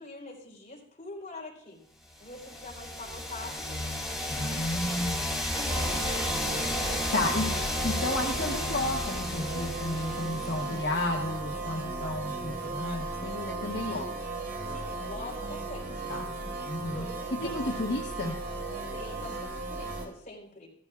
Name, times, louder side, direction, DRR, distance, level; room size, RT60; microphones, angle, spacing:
voice 1, 0.0-1.8 2.2-5.1 5.5-7.1 14.7-16.1 16.9-17.9 18.9-20.7, left 2 dB, 40° left, -3 dB, 3.9 m, -45 dB
sound 1, 2.3-11.0, left 1 dB, ahead, 2.0 m, -32 dB
voice 2, 4.4-5.2 7.1-7.5 7.8-14.1 16.1-16.3 16.7-17.0 17.4-18.4, left 2 dB, 70° left, 0 dB, 1.0 m, -32 dB
sound 2, 5.7-20.1, right 3 dB, 60° right, 2.7 m, -36 dB
15.5 x 14.0 x 2.4 m, 0.68 s
head